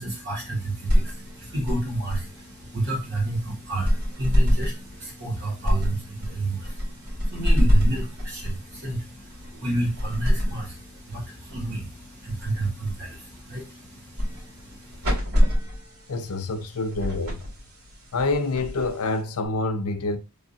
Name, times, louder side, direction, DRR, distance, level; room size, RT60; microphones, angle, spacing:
voice 1, 0.0-15.1, right 2 dB, 50° right, 1.9 m, -31 dB
sound 1, 0.6-19.5, equal, 75° right, 2.3 m, -27 dB
voice 2, 16.1-17.4 18.1-20.2, left 3 dB, 80° left, 0.6 m, -27 dB
3.4 x 3.4 x 2.8 m
head